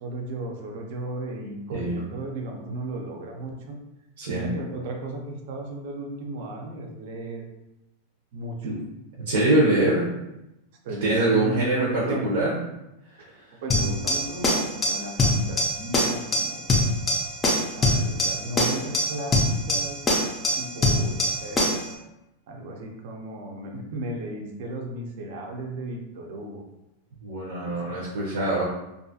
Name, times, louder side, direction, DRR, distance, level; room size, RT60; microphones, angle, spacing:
voice 1, 0.0-3.8 4.3-7.4 8.3-8.8 10.8-12.3 13.6-16.7 17.7-20.0 20.6-21.8 22.5-26.6 27.6-28.0, right 1 dB, 50° right, 1 dB, 0.5 m, -35 dB
voice 2, 1.7-2.0 4.2-4.5 8.6-8.7 9.3-10.1 11.0-12.6 27.2-28.6, right 2 dB, 85° right, -4 dB, 0.7 m, -23 dB
sound 1, 13.7-21.9, left 1 dB, 15° left, 0.4 m, -24 dB
2.6 x 2.4 x 2.6 m, 0.92 s
supercardioid pair, 175°, 0 cm